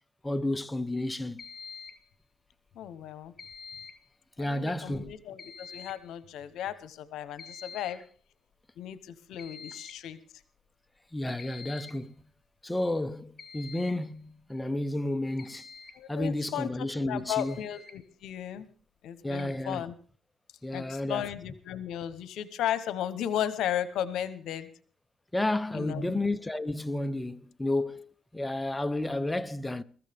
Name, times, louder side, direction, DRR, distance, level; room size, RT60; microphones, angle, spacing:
voice 1, 0.2-1.4 4.4-5.1 11.1-12.1 12.6-15.7 16.1-17.6 19.2-19.8 20.6-21.3 25.3-29.8, left 1 dB, 15° left, 0.8 m, -31 dB
sound 1, 1.4-2.1 3.4-4.1 5.4-6.1 7.4-8.1 9.4-10.1 11.4-12.1 13.4-14.1 15.4-16.0 17.1-17.2 17.4-18.0 19.4-19.6, left 5 dB, 35° left, 2.7 m, -47 dB
voice 2, 2.7-3.3 4.4-8.0 8.8-10.2 15.9-18.7 19.0-19.9 20.7-24.7 25.7-26.2, left 10 dB, 80° left, 1.0 m, -35 dB
22.5 x 14.5 x 3.5 m
cardioid pair, 90°, 0 cm